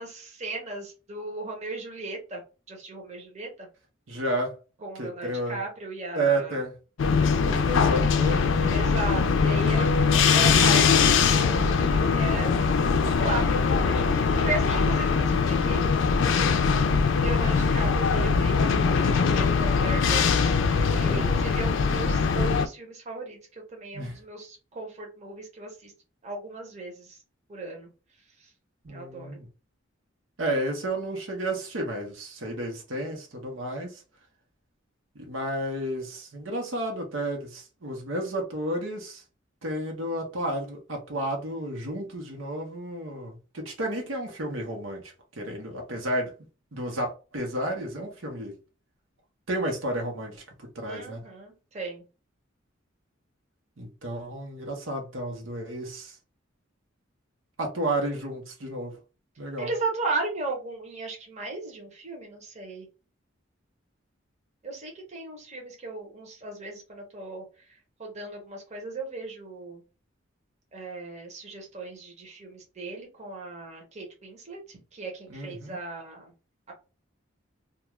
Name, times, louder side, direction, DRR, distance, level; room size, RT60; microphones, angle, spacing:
voice 1, 0.0-2.4 2.7-3.7 4.8-6.6 8.7-12.6 13.1-16.1 17.2-20.5 20.9-25.9 26.2-27.2 27.5-27.9 28.4-28.5 28.9-29.4 50.8-52.0 59.6-62.8 64.6-67.4 68.0-69.8 70.7-76.3 76.7-76.8, right 2 dB, 35° right, 0.8 m, -36 dB
voice 2, 4.1-4.5 5.0-5.6 6.1-6.7 7.4-8.8 21.1-21.3 23.9-24.2 28.8-29.5 30.4-34.0 35.1-39.2 39.6-46.3 46.7-48.5 49.5-50.4 50.7-51.2 53.8-56.1 57.6-59.0 59.4-59.7 75.3-75.8, right 1 dB, 80° right, 0.9 m, -31 dB
sound 1, 7.0-22.7, left 5 dB, 70° left, 0.4 m, -22 dB
2.4 x 2.3 x 3.0 m
head